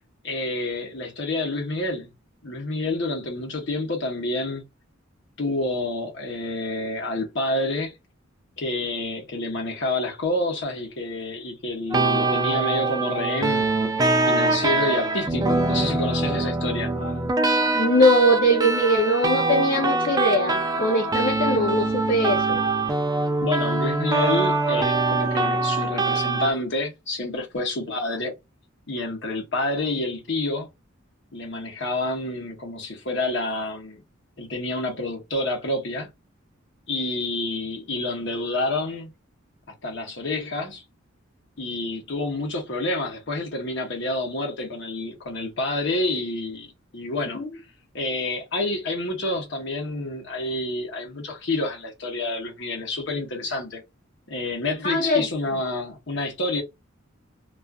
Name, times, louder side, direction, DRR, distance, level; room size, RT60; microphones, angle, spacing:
voice 1, 0.2-2.1 2.4-4.6 5.4-7.9 8.6-13.7 14.3-16.9 23.4-28.3 28.9-30.7 31.3-34.0 34.4-36.1 36.9-39.1 39.8-40.8 41.6-46.7 46.9-47.4 47.9-53.8 54.3-56.6, left 2 dB, 60° left, 0.9 m, -28 dB
sound 1, 11.9-26.5, right 3 dB, 20° right, 0.3 m, -23 dB
voice 2, 17.7-22.6 47.3-47.5 54.8-55.2, equal, 40° left, 0.5 m, -21 dB
2.4 x 2.3 x 2.3 m
head